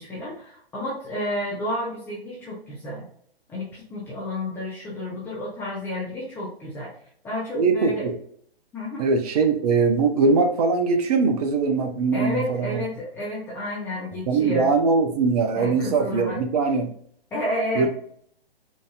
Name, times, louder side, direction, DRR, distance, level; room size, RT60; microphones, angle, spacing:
voice 1, 0.0-3.1 3.5-6.9 7.2-8.0 8.7-9.1 12.1-14.7 15.6-16.4 17.3-17.9, left 1 dB, 5° left, -7 dB, 0.4 m, -31 dB
voice 2, 7.5-8.1 9.0-12.8 14.3-16.9 17.7-17.9, right 4 dB, 40° right, 6 dB, 0.7 m, -21 dB
3.9 x 2.6 x 2.4 m, 0.62 s
figure-of-eight pair, 125°, 30 cm